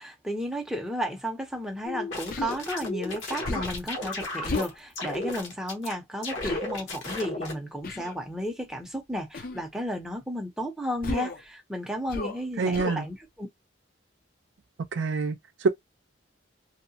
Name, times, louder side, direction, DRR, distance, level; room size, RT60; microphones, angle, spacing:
voice 1, 0.0-13.5, equal, 5° right, 0.6 m, -33 dB
sound 1, 1.9-4.7 5.0-5.9 6.2-7.6, left 2 dB, 70° left, 1.1 m, -34 dB
Human voice, 2.3-2.6 3.4-3.8 4.4-4.8 6.4-6.6 7.8-8.1 9.3-9.6 11.0-11.4 12.1-12.4 12.7-13.0, left 3 dB, 45° left, 0.5 m, -33 dB
voice 2, 12.6-13.1 14.9-15.7, right 4 dB, 70° right, 0.5 m, -26 dB
2.7 x 2.1 x 2.7 m
head